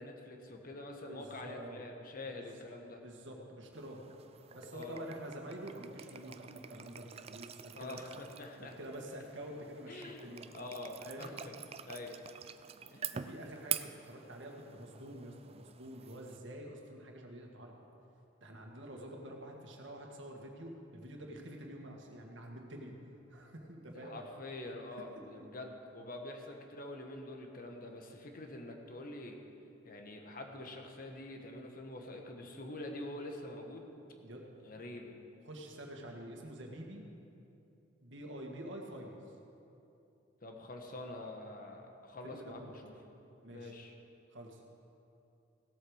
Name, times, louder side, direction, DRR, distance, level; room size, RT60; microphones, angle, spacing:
voice 1, 0.0-3.0 4.7-5.0 7.8-8.7 9.9-10.3 10.5-11.5 11.8-12.1 12.9-13.3 23.9-29.4 29.8-33.9 34.6-35.1 40.4-42.9 43.5-43.9, left 2 dB, 50° left, 3 dB, 1.4 m, -46 dB
voice 2, 1.1-1.8 2.2-2.5 3.0-4.0 4.5-8.0 8.6-10.5 11.0-11.3 13.1-17.8 18.4-22.9 23.3-24.2 25.4-25.5 34.2-34.4 34.8-34.9 35.4-37.0 38.0-39.2 42.2-42.7 43.4-43.7 44.3-44.6, right 1 dB, 75° right, 1 dB, 1.8 m, -47 dB
sound 1, 3.7-16.4, right 9 dB, 30° right, 0.4 m, -46 dB
16.5 x 8.3 x 6.4 m, 2.8 s
head